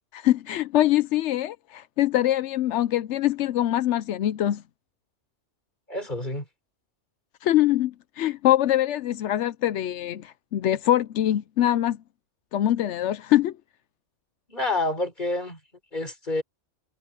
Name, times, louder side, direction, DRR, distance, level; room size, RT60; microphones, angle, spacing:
voice 1, 0.1-4.6 7.4-12.0 12.5-13.5, left 13 dB, 75° left, 0.9 m, -23 dB
voice 2, 5.9-6.5 14.5-15.6 15.9-16.4, left 2 dB, 40° left, 4.0 m, -28 dB
omnidirectional pair, 1.3 m